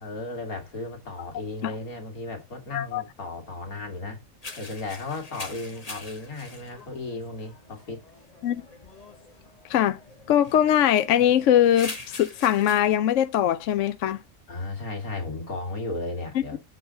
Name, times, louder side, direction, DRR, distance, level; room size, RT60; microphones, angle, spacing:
voice 1, 0.0-4.2 4.6-8.0 14.5-16.6, left 2 dB, 90° left, 2.7 m, -35 dB
voice 2, 2.7-3.0 8.4-8.6 9.7-10.0 10.3-14.2 16.3-16.4, left 11 dB, 70° left, 0.9 m, -21 dB
sound 1, 4.4-12.8, left 3 dB, 25° left, 1.5 m, -44 dB
7.8 x 3.9 x 6.3 m
omnidirectional pair, 1.5 m